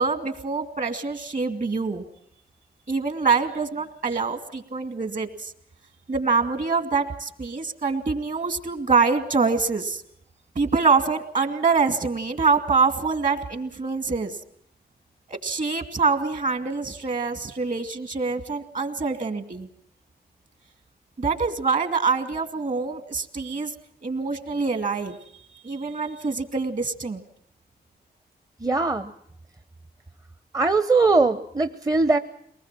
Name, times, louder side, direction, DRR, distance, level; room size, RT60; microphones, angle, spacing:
voice 1, 0.0-2.0 2.9-5.5 6.1-10.0 10.6-14.4 15.3-19.7 21.2-23.7 24.0-25.2 25.6-27.2, right 4 dB, 50° right, 8 dB, 2.4 m, -25 dB
voice 2, 28.6-29.1 30.5-32.2, right 3 dB, 20° right, 10 dB, 0.8 m, -20 dB
23.5 x 19.5 x 7.5 m, 0.70 s
cardioid pair, 80°, 18 cm